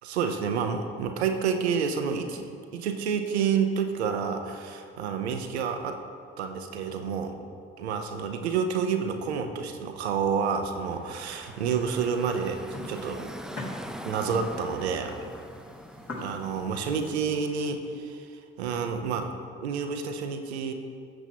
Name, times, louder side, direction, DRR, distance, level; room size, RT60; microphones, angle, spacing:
voice 1, 0.0-6.0 6.4-7.4 7.8-13.3 14.0-15.2 16.2-19.3 19.6-20.7, right 6 dB, 85° right, 6 dB, 0.7 m, -29 dB
Car passing by / Traffic noise roadway noise, 10.6-17.5, equal, ahead, 0.5 m, -43 dB
sound 1, 11.9-17.5, left 2 dB, 50° left, 2.5 m, -44 dB
13.5 x 7.8 x 2.9 m, 2.4 s
figure-of-eight pair, 45°, 32 cm